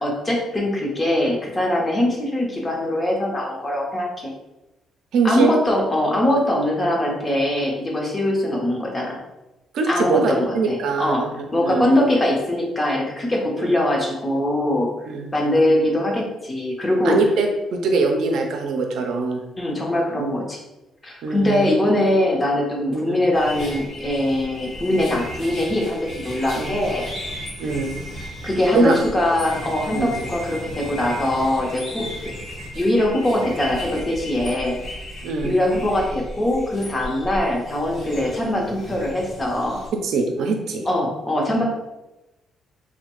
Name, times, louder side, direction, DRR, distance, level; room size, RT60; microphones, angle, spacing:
voice 1, 0.0-4.3 5.2-9.2 9.9-11.2 11.5-14.9 15.3-17.2 19.6-20.6 21.0-27.0 28.2-32.1 32.7-34.8 35.4-39.8 40.9-41.6, left 1 dB, 25° left, -1 dB, 0.8 m, -22 dB
voice 2, 5.1-5.5 9.7-11.9 13.6-13.8 15.1-15.3 17.0-19.4 21.2-21.7 22.9-23.2 24.9-25.1 26.6-26.8 27.6-27.9 28.7-29.0 29.9-30.1 35.2-35.5 39.9-40.8, right 4 dB, 75° right, 3 dB, 0.5 m, -23 dB
sound 1, 23.3-39.9, equal, 70° left, 1.0 m, -35 dB
2.9 x 2.1 x 3.0 m, 0.98 s
cardioid pair, 90°, 0 cm